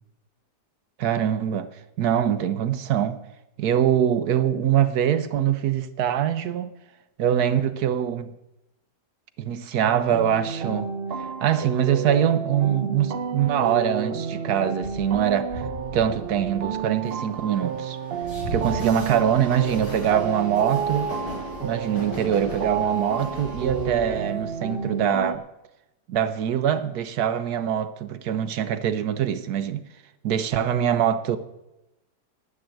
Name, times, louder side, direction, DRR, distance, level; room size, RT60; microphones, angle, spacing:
voice 1, 1.0-1.7 2.0-3.2 3.6-6.7 7.2-8.3 9.4-10.9 11.4-15.7 15.9-18.0 18.5-21.1 21.6-25.4 26.1-29.8 30.2-31.4, right 9 dB, 70° right, 1.2 m, -23 dB
sound 1, 9.8-25.4, right 6 dB, 50° right, 0.7 m, -31 dB
Train, 14.8-25.2, left 1 dB, 80° left, 5.7 m, -37 dB
11.5 x 8.6 x 7.7 m
omnidirectional pair, 1.8 m